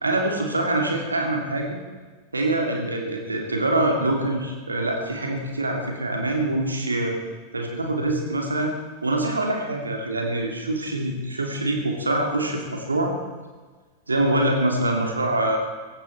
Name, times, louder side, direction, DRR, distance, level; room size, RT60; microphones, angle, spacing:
voice 1, 0.0-1.8 2.3-7.2 7.5-8.8 9.0-13.1 14.1-15.6, right 1 dB, 80° right, 2 dB, 2.6 m, -24 dB
17.0 x 16.0 x 4.5 m, 1.4 s
figure-of-eight pair, 90°, 0 cm